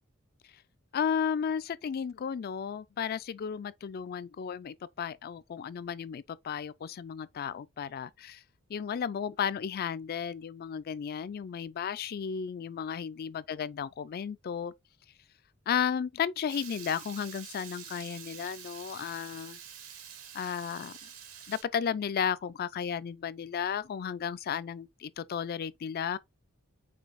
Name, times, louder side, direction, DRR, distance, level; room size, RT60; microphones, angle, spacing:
voice 1, 0.9-8.4 8.7-14.7 15.7-19.6 20.3-21.1 21.5-26.2, left 7 dB, 45° left, 0.3 m, -34 dB
Water tap faucet / Liquid, 16.5-21.6, right 8 dB, 80° right, 1.4 m, -47 dB
5.0 x 4.1 x 2.4 m
head